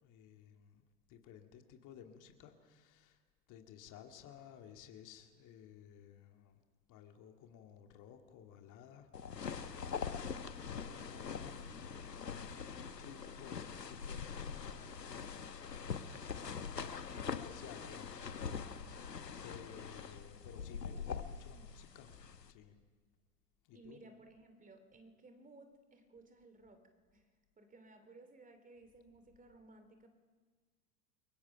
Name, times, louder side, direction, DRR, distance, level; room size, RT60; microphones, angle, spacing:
voice 1, 0.0-3.2 3.5-6.6 6.9-10.2 10.6-11.9 12.3-14.9 16.0-18.2 19.4-22.8 23.6-24.0, left 9 dB, 40° left, 5 dB, 2.2 m, -56 dB
sound 1, 9.1-22.5, left 6 dB, 85° left, 1.2 m, -43 dB
voice 2, 23.7-26.8 27.1-27.3 27.6-30.1, right 2 dB, 15° right, 8 dB, 2.6 m, -59 dB
29.0 x 23.0 x 5.8 m, 1.5 s
figure-of-eight pair, 85°, 48 cm